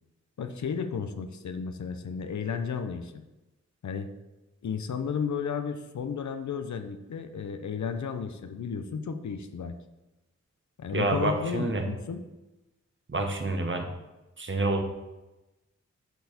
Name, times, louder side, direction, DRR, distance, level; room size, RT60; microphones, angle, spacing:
voice 1, 0.4-3.2 3.8-4.1 4.6-9.7 10.8-12.2, left 6 dB, 70° left, 8 dB, 0.7 m, -33 dB
voice 2, 10.9-11.8 13.1-13.9 14.4-14.8, right 2 dB, 40° right, 4 dB, 1.2 m, -28 dB
8.0 x 4.7 x 4.1 m, 1.0 s
cardioid pair, 45°, 29 cm